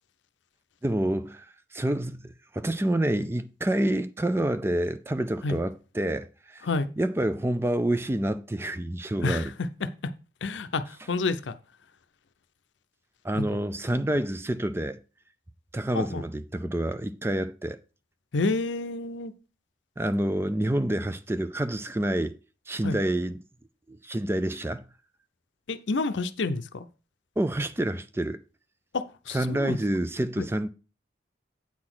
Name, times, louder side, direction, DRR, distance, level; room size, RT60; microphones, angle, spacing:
voice 1, 0.8-1.5 1.7-6.7 7.0-9.5 13.2-15.0 15.7-17.8 20.0-22.4 22.7-23.4 23.9-24.9 27.4-28.4 29.3-30.7, right 1 dB, 15° right, 0.4 m, -28 dB
voice 2, 10.4-11.5 13.3-13.4 15.9-16.2 18.3-19.3 22.8-23.0 25.7-26.9 28.9-29.8 30.4-30.5, left 3 dB, 85° left, 0.6 m, -29 dB
8.5 x 4.0 x 6.1 m
head